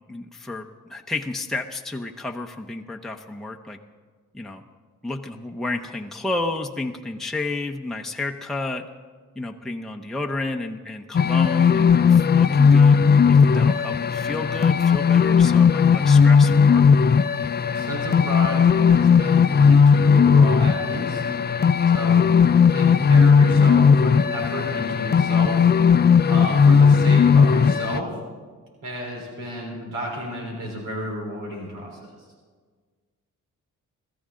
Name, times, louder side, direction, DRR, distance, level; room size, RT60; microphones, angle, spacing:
voice 1, 0.1-3.8 4.3-4.6 5.0-8.9 9.4-16.9, left 2 dB, ahead, 2 dB, 0.8 m, -31 dB
sound 1, 11.1-28.0, left 6 dB, 30° left, 0.5 m, -16 dB
voice 2, 17.7-21.2 21.9-22.2 22.7-25.7 26.3-28.1 28.8-32.1, equal, 90° right, -1 dB, 4.1 m, -31 dB
23.0 x 14.0 x 3.8 m, 1.5 s
cardioid pair, 95°, 31 cm